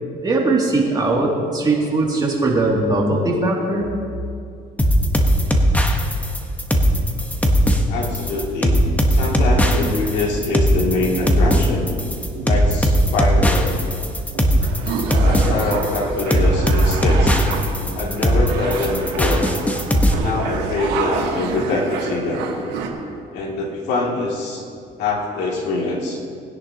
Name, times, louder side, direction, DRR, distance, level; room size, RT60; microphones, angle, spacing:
voice 1, 0.2-3.9, right 2 dB, 25° right, -3 dB, 2.5 m, -19 dB
sound 1, 4.8-20.1, equal, 10° left, 1.1 m, -18 dB
voice 2, 7.9-8.8 9.1-11.9 12.4-13.8 15.2-17.4 17.9-19.5 20.1-22.4 23.3-24.6 25.0-26.2, left 2 dB, 85° left, -3 dB, 2.5 m, -24 dB
sound 2, 9.3-9.8 10.3-10.8 11.3-11.8 12.3-12.7 13.3-13.8 14.3-14.7 15.4-15.8 16.3-16.8 17.3-17.8, right 8 dB, 70° right, 1.1 m, -34 dB
sound 3, 14.6-22.9, right 5 dB, 90° right, 1.4 m, -29 dB
19.5 x 10.5 x 2.9 m, 2.4 s
cardioid pair, 110°, 17 cm